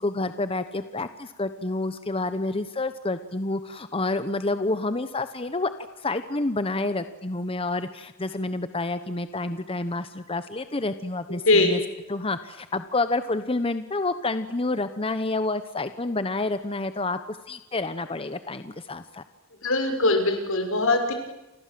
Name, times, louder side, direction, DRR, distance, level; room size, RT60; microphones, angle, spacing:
voice 1, 0.0-5.7 6.0-11.8 12.1-19.2, left 2 dB, 30° left, 10 dB, 1.1 m, -29 dB
voice 2, 11.3-11.8 19.6-21.1, left 2 dB, 85° left, 5 dB, 6.0 m, -22 dB
29.5 x 25.5 x 7.7 m, 1.0 s
head